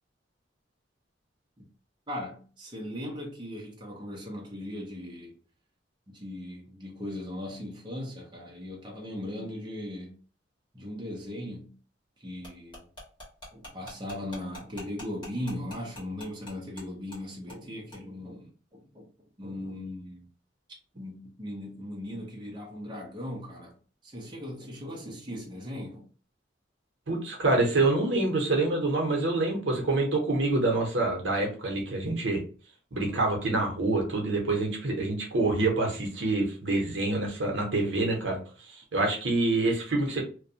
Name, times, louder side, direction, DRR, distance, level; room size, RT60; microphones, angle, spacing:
voice 1, 2.1-5.3 6.1-10.1 10.7-11.7 12.2-12.8 13.5-19.1 19.4-20.3 20.9-23.7 24.0-26.1, left 1 dB, 25° right, 0.7 m, -38 dB
sound 1, 12.4-16.8 17.1-17.2 17.5-17.6 17.9-18.0, left 1 dB, 25° left, 1.1 m, -44 dB
voice 2, 27.1-32.4 32.9-40.2, right 2 dB, 80° right, 0.8 m, -26 dB
2.4 x 2.2 x 2.7 m
head